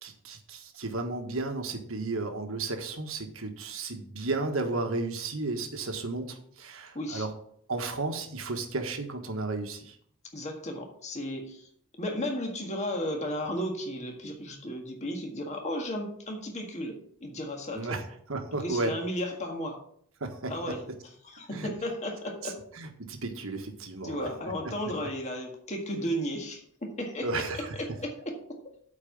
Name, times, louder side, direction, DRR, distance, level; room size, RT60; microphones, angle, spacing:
voice 1, 0.0-7.3 7.7-10.0 17.7-18.9 20.2-20.7 21.5-21.7 22.4-24.3 27.2-27.7, right 3 dB, 65° right, 5 dB, 1.4 m, -33 dB
voice 2, 6.9-7.3 10.3-11.7 12.0-18.0 18.6-19.8 20.5-20.8 21.2-22.6 24.0-27.5 27.8-28.6, equal, 30° left, 2 dB, 1.7 m, -34 dB
8.7 x 4.7 x 7.1 m, 0.64 s
head